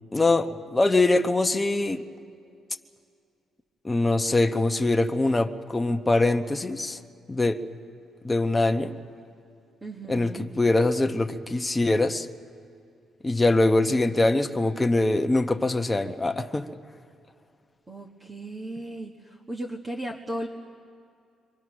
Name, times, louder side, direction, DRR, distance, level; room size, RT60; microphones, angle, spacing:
voice 1, 0.1-2.0 3.8-7.0 7.3-7.6 8.2-9.0 10.1-12.3 13.2-16.7, left 2 dB, 15° left, 6 dB, 1.0 m, -23 dB
voice 2, 9.8-10.5 17.9-20.5, right 1 dB, 25° right, 0 dB, 1.7 m, -36 dB
28.0 x 24.0 x 6.3 m, 2.4 s
cardioid pair, 90°, 0 cm